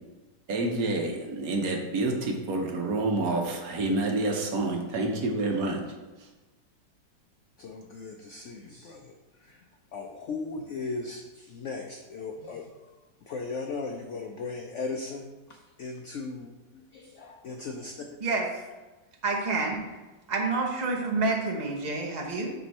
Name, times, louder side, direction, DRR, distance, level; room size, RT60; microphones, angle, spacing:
voice 1, 0.5-5.9, right 2 dB, 60° right, 1 dB, 1.3 m, -28 dB
voice 2, 7.6-9.7 9.9-12.7 13.2-18.1, left 3 dB, 80° left, 3 dB, 0.6 m, -37 dB
voice 3, 18.2-18.6 19.2-19.8 20.3-22.5, right 3 dB, 30° right, 0 dB, 0.8 m, -28 dB
9.0 x 3.5 x 4.2 m, 1.2 s
omnidirectional pair, 1.9 m